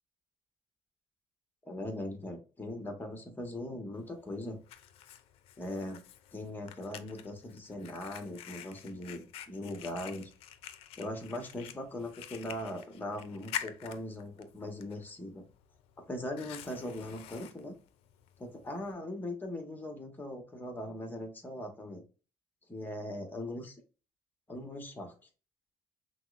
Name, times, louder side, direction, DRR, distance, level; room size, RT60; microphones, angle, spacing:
voice 1, 1.6-4.6 5.6-6.0 6.3-10.3 11.0-15.4 16.0-17.7 18.4-22.0 22.7-23.8 24.5-25.1, left 1 dB, 20° left, 5 dB, 1.1 m, -40 dB
Fire, 4.0-18.9, left 11 dB, 75° left, 0.4 m, -48 dB
5.6 x 2.1 x 2.4 m, 0.34 s
cardioid pair, 105°, 10 cm